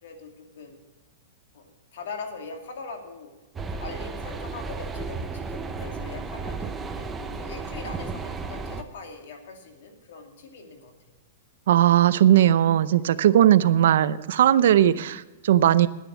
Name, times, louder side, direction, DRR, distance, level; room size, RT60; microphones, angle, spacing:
voice 1, 0.0-0.8 1.5-10.9 12.9-13.2, left 4 dB, 65° left, 4 dB, 2.3 m, -41 dB
sound 1, 3.6-8.8, right 4 dB, 10° right, 0.6 m, -34 dB
voice 2, 11.7-15.9, right 11 dB, 65° right, 15 dB, 0.5 m, -18 dB
11.0 x 10.0 x 6.2 m, 1.1 s
supercardioid pair, 170°, 0 cm